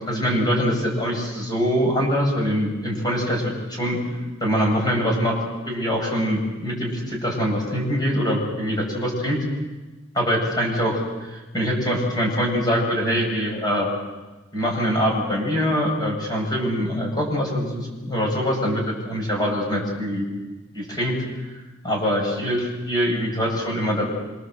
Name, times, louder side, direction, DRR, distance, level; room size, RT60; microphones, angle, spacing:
voice 1, 0.0-4.0 4.4-9.4 10.1-13.9 14.5-20.2 20.7-21.2 21.8-24.1, equal, 20° left, 0 dB, 7.9 m, -23 dB
26.5 x 26.5 x 8.1 m, 1.2 s
head